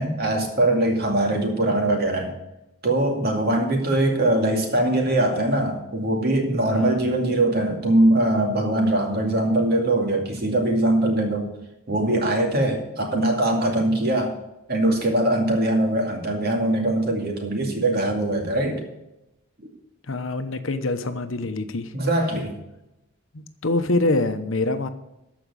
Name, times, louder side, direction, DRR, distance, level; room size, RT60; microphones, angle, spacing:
voice 1, 0.0-2.3 2.8-11.5 11.9-14.3 14.7-18.8 21.9-22.5, right 1 dB, 50° right, 2 dB, 2.4 m, -22 dB
voice 2, 6.7-7.1 20.1-21.9 23.3-24.9, left 2 dB, 70° left, 9 dB, 1.0 m, -25 dB
13.5 x 5.1 x 8.4 m, 0.90 s
head